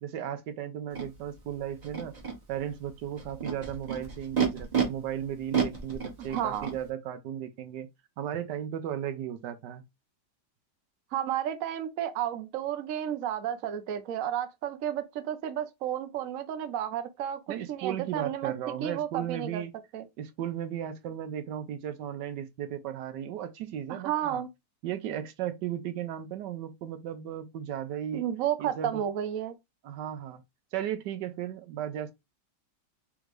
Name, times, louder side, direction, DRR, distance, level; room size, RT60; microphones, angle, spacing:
voice 1, 0.0-2.2 2.5-7.9 8.2-9.8 17.5-19.7 20.2-24.4 24.8-28.2 28.6-29.0 29.8-30.4 30.7-32.1, right 10 dB, 80° right, 1.3 m, -35 dB
Animal, 0.9-1.0 1.8-2.3 3.2-4.8 5.5-6.7, right 7 dB, 30° right, 1.0 m, -29 dB
voice 2, 6.3-6.7 11.1-18.5 18.8-19.6 19.9-20.0 23.9-24.5 28.1-29.5, right 10 dB, 60° right, 0.9 m, -32 dB
3.7 x 3.6 x 3.0 m
omnidirectional pair, 1.9 m